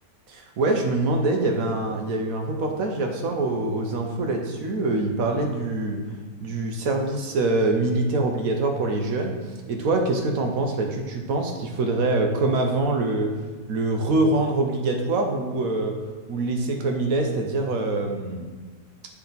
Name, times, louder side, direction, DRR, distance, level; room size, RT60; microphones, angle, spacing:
voice 1, 0.3-6.0 6.4-13.3 13.7-15.9 16.3-18.5, right 2 dB, 65° right, 3 dB, 1.1 m, -24 dB
8.6 x 3.4 x 3.9 m, 1.4 s
omnidirectional pair, 1.8 m